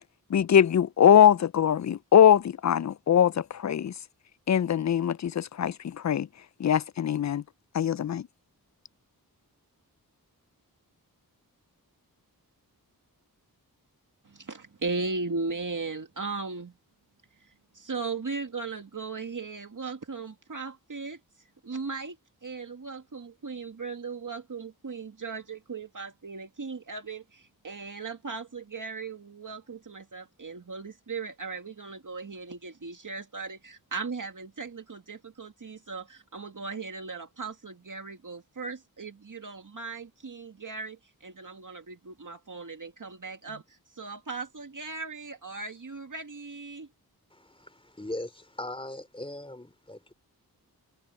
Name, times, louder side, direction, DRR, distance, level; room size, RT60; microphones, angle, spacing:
voice 1, 0.3-3.9 4.5-6.3 6.6-7.4 7.7-8.2, left 9 dB, 50° left, 0.5 m, -22 dB
voice 2, 14.2-16.7 17.4-21.2 21.6-22.2 22.4-46.9, right 4 dB, 55° right, 2.1 m, -37 dB
voice 3, 47.3-50.1, left 1 dB, 15° left, 3.8 m, -39 dB
wide cardioid pair, 55°, 37 cm